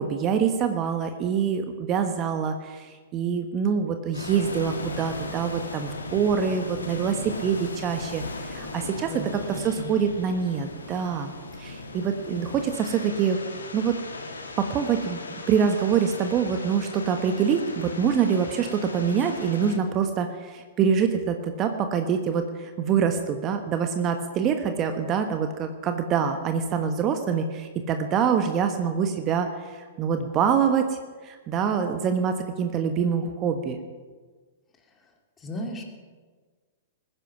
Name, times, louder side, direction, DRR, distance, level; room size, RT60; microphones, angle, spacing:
voice 1, 0.0-11.3 11.6-13.4 13.7-14.0 14.6-15.2 15.5-33.8, right 7 dB, 30° right, 7 dB, 1.2 m, -25 dB
sound 1, 4.1-19.8, left 3 dB, 85° left, 2.3 m, -38 dB
voice 2, 9.1-10.0 35.4-35.8, equal, 20° left, 2 dB, 2.6 m, -36 dB
20.5 x 10.0 x 6.0 m, 1.4 s
figure-of-eight pair, 105°, 0 cm